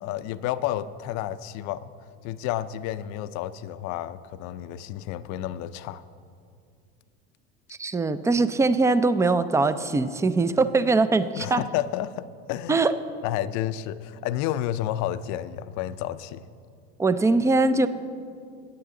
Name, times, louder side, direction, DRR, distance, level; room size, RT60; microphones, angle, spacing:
voice 1, 0.0-1.9 2.2-6.0 11.4-12.8 13.2-16.5, left 12 dB, 60° left, 15 dB, 0.5 m, -31 dB
voice 2, 7.8-11.6 12.7-12.9 17.0-17.9, right 3 dB, 10° right, 13 dB, 0.4 m, -22 dB
17.0 x 9.2 x 3.8 m, 2.3 s
supercardioid pair, 100°, 32 cm